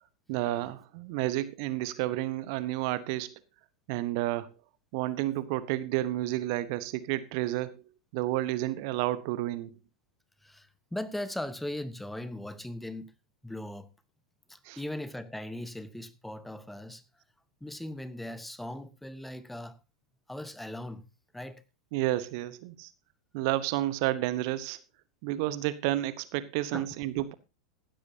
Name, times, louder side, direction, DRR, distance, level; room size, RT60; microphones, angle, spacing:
voice 1, 0.3-3.3 3.9-4.5 4.9-7.8 8.1-9.7 14.6-14.8 21.9-22.9 23.3-24.8 25.2-27.3, right 15 dB, 50° right, 0.9 m, -31 dB
voice 2, 10.4-13.1 13.4-13.9 14.5-17.0 17.6-19.8 20.3-21.0 21.3-21.6 26.7-26.9, left 1 dB, 5° left, 1.0 m, -39 dB
16.0 x 13.0 x 2.8 m
figure-of-eight pair, 90°, 3 cm